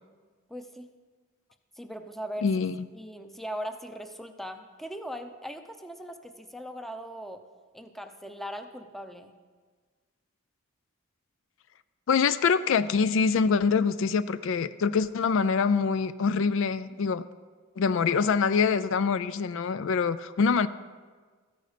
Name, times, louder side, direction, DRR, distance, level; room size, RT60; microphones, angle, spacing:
voice 1, 0.5-0.9 1.8-2.5 2.9-7.4 7.7-9.3, equal, ahead, 7 dB, 0.6 m, -39 dB
voice 2, 2.4-2.8 12.1-17.2 17.8-20.7, left 5 dB, 60° left, 15 dB, 0.4 m, -25 dB
14.0 x 10.5 x 5.1 m, 1.5 s
head